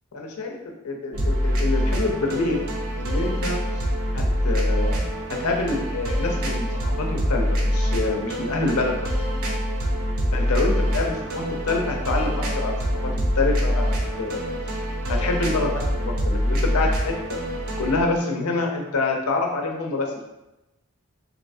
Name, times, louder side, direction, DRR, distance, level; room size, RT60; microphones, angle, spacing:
voice 1, 0.1-0.6 0.8-2.7 3.0-3.6 4.1-5.0 5.4-9.0 10.3-12.8 13.0-13.1 13.4-14.4 15.1-17.4 17.8-20.2, left 3 dB, 90° left, 1 dB, 0.6 m, -26 dB
sound 1, 1.1-18.0, equal, 75° right, 0.6 m, -25 dB
3.1 x 2.7 x 2.6 m, 0.97 s
head